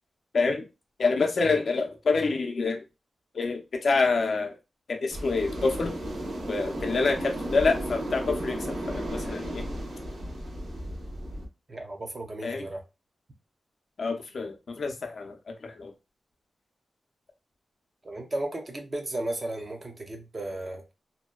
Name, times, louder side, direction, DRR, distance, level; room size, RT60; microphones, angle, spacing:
voice 1, 1.0-2.8 3.3-4.6 4.9-5.9 6.5-8.6 8.9-9.6 12.4-12.6 14.0-15.3 15.6-15.9, left 4 dB, 65° left, 0.5 m, -27 dB
sound 1, 5.1-11.5, right 1 dB, 90° right, 0.7 m, -34 dB
voice 2, 11.7-12.8 18.0-20.9, right 1 dB, 35° right, 0.6 m, -34 dB
2.6 x 2.2 x 2.2 m
wide cardioid pair, 110°, 0 cm